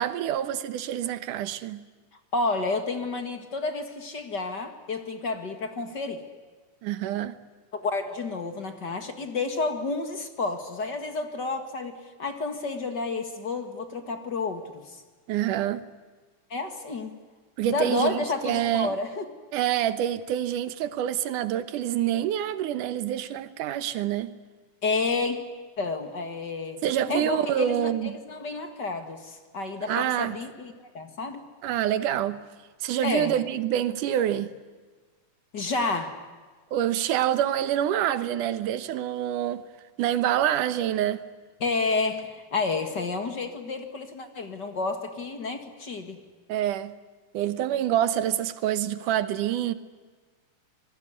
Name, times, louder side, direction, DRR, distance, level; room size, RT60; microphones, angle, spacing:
voice 1, 0.0-1.8 6.8-7.3 15.3-15.8 17.6-19.0 19.5-24.3 26.8-28.1 29.8-30.4 31.6-32.4 32.8-34.5 36.7-39.6 40.0-41.2 46.5-46.9 47.3-49.7, right 11 dB, 85° right, 2.7 m, -26 dB
voice 2, 2.3-6.2 7.7-11.9 12.2-14.8 16.5-17.2 17.6-19.3 24.8-25.4 25.8-26.8 27.1-31.4 33.0-33.4 35.5-36.2 41.6-46.2, left 3 dB, 40° left, 2.1 m, -30 dB
26.5 x 20.0 x 9.7 m
omnidirectional pair, 3.5 m